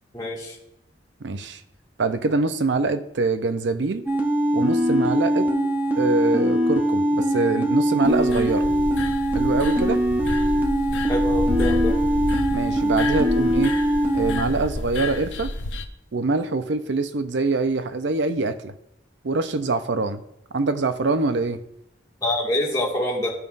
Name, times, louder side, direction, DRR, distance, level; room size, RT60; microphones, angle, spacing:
voice 1, 0.1-0.6 11.1-11.9 22.2-23.3, left 1 dB, 20° left, -5 dB, 1.9 m, -25 dB
voice 2, 1.2-1.6 2.0-4.0 4.5-5.5 6.0-8.6 9.3-10.0 12.5-13.7 14.1-15.5 16.1-18.7 19.2-20.2 20.5-21.6, right 3 dB, 75° right, 10 dB, 0.6 m, -24 dB
sound 1, 4.1-14.4, equal, 10° right, 0.7 m, -22 dB
sound 2, 8.1-15.8, left 2 dB, 85° left, 0.6 m, -30 dB
13.5 x 5.3 x 2.5 m, 0.80 s
head